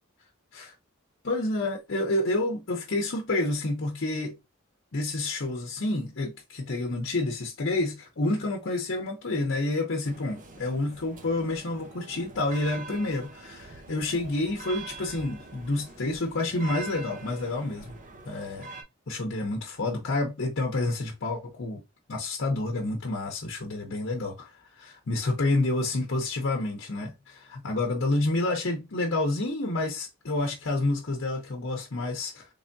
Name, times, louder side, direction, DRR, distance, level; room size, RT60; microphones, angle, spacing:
voice 1, 1.2-4.4 4.9-18.0 18.2-18.7 19.1-21.8 22.1-32.5, left 2 dB, 60° left, 0.8 m, -29 dB
sound 1, 10.0-18.8, right 3 dB, 40° right, 0.7 m, -44 dB
3.5 x 3.4 x 2.6 m
head